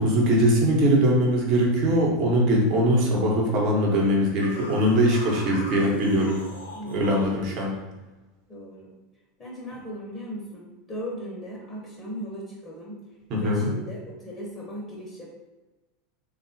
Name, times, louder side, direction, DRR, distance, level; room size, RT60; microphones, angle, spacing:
voice 1, 0.0-6.4 6.9-7.7 13.3-13.7, equal, 45° right, -1 dB, 0.9 m, -21 dB
sound 1, 4.4-7.4, equal, 85° left, 0.5 m, -40 dB
voice 2, 6.7-7.4 8.5-9.0 9.4-13.0 13.4-15.3, equal, 25° left, -2 dB, 0.9 m, -37 dB
3.6 x 2.3 x 2.7 m, 1.1 s
figure-of-eight pair, 80°, 0 cm